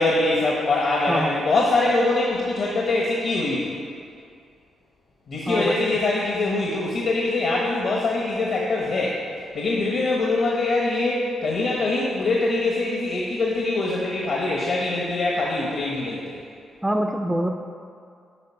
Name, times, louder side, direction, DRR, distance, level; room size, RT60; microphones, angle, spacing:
voice 1, 0.0-3.8 5.3-9.2 9.5-16.4, left 2 dB, 60° left, -3 dB, 1.1 m, -23 dB
voice 2, 16.8-17.5, right 1 dB, 10° right, 3 dB, 0.4 m, -24 dB
8.9 x 4.8 x 5.7 m, 2.3 s
cardioid pair, 105°, 0 cm